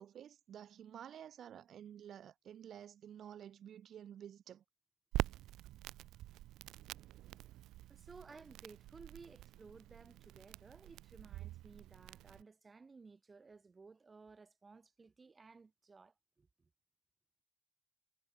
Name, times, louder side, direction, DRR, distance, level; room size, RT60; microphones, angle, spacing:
voice 1, 0.0-4.6, right 9 dB, 50° right, 1.0 m, -52 dB
Crackle, 5.1-12.4, right 15 dB, 75° right, 0.5 m, -45 dB
voice 2, 7.9-16.7, right 4 dB, 20° right, 0.5 m, -58 dB
cardioid pair, 140°, 0 cm